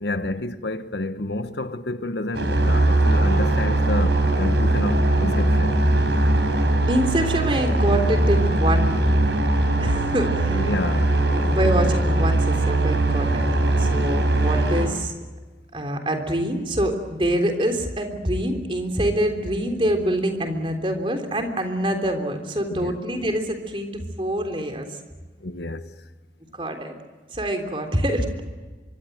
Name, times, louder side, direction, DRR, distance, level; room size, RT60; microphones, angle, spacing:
voice 1, 0.0-5.8 10.5-11.9 22.7-23.0 25.4-25.9, left 2 dB, 75° left, 1.2 m, -29 dB
sound 1, 2.3-14.9, right 1 dB, 80° right, 4.9 m, -20 dB
voice 2, 6.9-9.0 9.8-10.7 11.3-13.5 13.8-15.1 15.7-24.9 26.5-26.9 27.3-28.4, right 1 dB, 30° right, 3.5 m, -25 dB
25.0 x 23.5 x 8.0 m
head